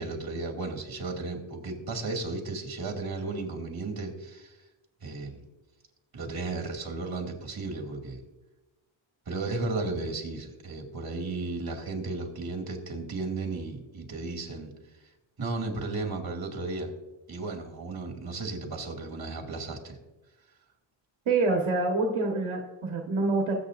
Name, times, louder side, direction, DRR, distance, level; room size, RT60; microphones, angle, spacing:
voice 1, 0.0-4.6 5.0-5.4 6.1-8.2 9.3-14.7 15.4-16.9 17.3-20.0, right 3 dB, 50° right, 1 dB, 2.4 m, -34 dB
voice 2, 21.2-23.5, right 3 dB, 75° right, 0 dB, 1.6 m, -26 dB
20.5 x 8.3 x 2.6 m, 1.1 s
wide cardioid pair, 140°, 49 cm